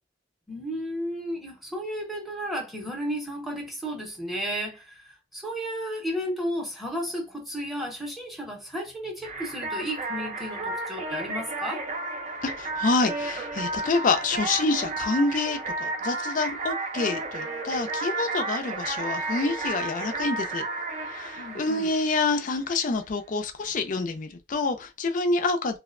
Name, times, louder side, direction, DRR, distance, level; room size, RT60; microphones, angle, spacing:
voice 1, 0.5-11.8 21.4-21.9, equal, ahead, 0.7 m, -33 dB
sound 1, 9.2-22.7, right 3 dB, 40° right, 0.5 m, -33 dB
voice 2, 12.4-20.6 21.1-25.8, left 3 dB, 45° left, 0.5 m, -27 dB
2.7 x 2.1 x 2.5 m
head